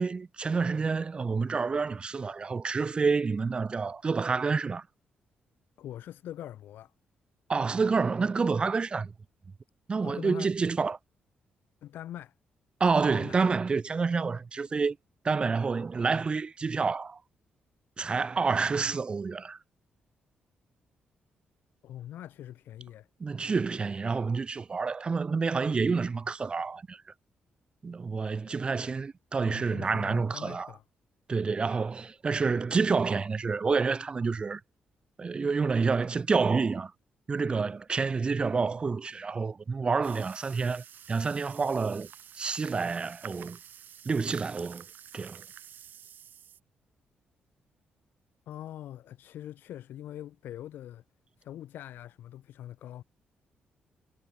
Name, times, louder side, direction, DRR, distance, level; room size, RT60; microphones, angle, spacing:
voice 1, 0.0-4.9 7.5-9.1 9.9-11.0 12.8-15.0 15.2-17.2 18.0-19.6 23.2-27.0 27.8-30.7 31.3-34.6 35.2-36.9 37.3-42.1 42.3-43.6 44.1-44.8 45.1-45.4, right 4 dB, 30° right, 0.4 m, -28 dB
voice 2, 5.8-6.9 10.0-10.5 11.8-12.3 13.1-13.4 21.8-23.1 29.4-30.8 48.5-51.0 51.4-53.0, left 12 dB, 85° left, 1.1 m, -43 dB
sound 1, 40.0-46.6, right 9 dB, 65° right, 0.7 m, -49 dB
cardioid pair, 110°, 3 cm